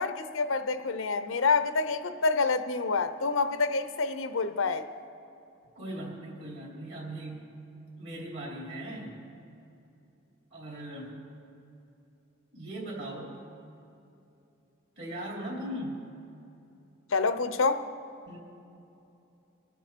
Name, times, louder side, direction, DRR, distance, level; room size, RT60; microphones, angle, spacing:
voice 1, 0.0-4.9 17.1-17.8, left 4 dB, 85° left, 11 dB, 0.7 m, -27 dB
voice 2, 5.7-7.5 8.0-9.2 10.5-11.1 12.5-13.3 15.0-16.0 18.3-18.4, right 1 dB, 60° right, -4 dB, 3.2 m, -39 dB
24.0 x 9.2 x 4.5 m, 2.8 s
head